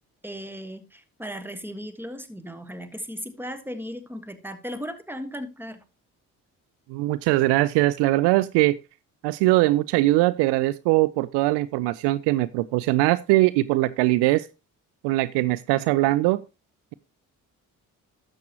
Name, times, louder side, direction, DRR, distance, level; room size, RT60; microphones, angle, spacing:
voice 1, 0.2-5.8, equal, 5° right, 1.5 m, -36 dB
voice 2, 6.9-8.8 9.2-14.5 15.0-16.4, right 18 dB, 65° right, 0.5 m, -21 dB
12.5 x 7.5 x 3.0 m
hypercardioid pair, 45°, 44 cm